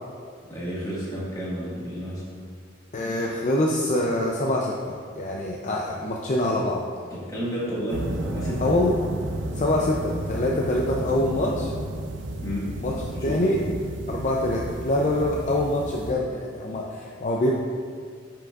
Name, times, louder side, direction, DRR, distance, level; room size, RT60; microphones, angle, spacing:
voice 1, 0.5-2.2 7.3-8.6 12.4-12.7 13.1-13.6, equal, 20° left, -8 dB, 1.7 m, -31 dB
voice 2, 2.9-6.8 8.6-9.0 9.5-11.7 12.8-12.9 13.2-13.6 14.1-17.5, left 1 dB, 40° left, -2 dB, 0.5 m, -25 dB
sound 1, 7.9-16.1, right 1 dB, 70° right, 0.6 m, -32 dB
10.5 x 5.9 x 2.4 m, 2.1 s
head